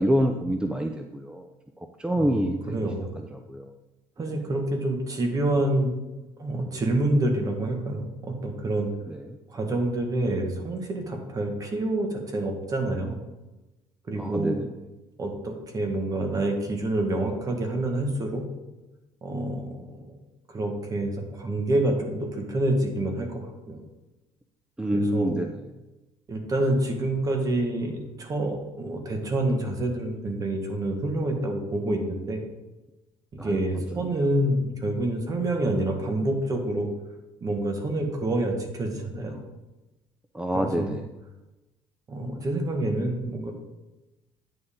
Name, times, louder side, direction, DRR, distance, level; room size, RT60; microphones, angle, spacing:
voice 1, 0.0-1.5 1.8-2.8 3.2-3.7 4.3-4.4 9.1-9.4 14.2-14.7 24.8-25.6 33.4-34.0 40.3-41.0, equal, 10° right, 5 dB, 0.5 m, -27 dB
voice 2, 2.1-3.1 4.2-5.9 6.4-8.9 9.5-13.2 14.1-14.5 15.2-18.4 19.2-20.1 20.5-23.8 24.9-25.4 26.3-32.4 33.3-36.9 37.4-39.4 40.5-40.9 42.1-43.5, right 1 dB, 30° right, 3 dB, 1.7 m, -27 dB
9.5 x 6.8 x 3.7 m, 1.1 s
cardioid pair, 120°, 11 cm